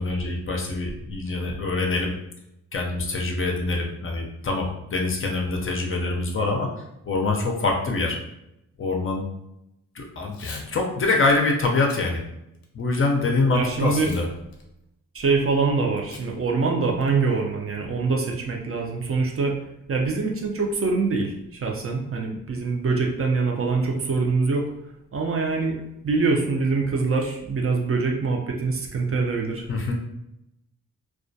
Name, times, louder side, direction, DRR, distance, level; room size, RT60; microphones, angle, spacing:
voice 1, 0.0-2.1 2.7-6.7 7.0-8.2 8.8-9.2 9.9-12.2 12.7-14.3 29.7-29.9, left 3 dB, 40° left, 1 dB, 0.5 m, -24 dB
Packing tape duct tape / Tearing, 10.2-10.7 11.1-11.3 11.8-12.0 12.5-13.1 13.9-14.3 14.5-14.6 16.1-16.3 16.6-16.7 17.0-17.3, left 4 dB, 90° left, 0.5 m, -43 dB
voice 2, 13.4-14.1 15.1-19.5 19.9-24.7 25.1-25.8 26.0-29.6, right 4 dB, 40° right, 0 dB, 0.5 m, -24 dB
2.2 x 2.1 x 2.6 m, 0.85 s
cardioid pair, 80°, 34 cm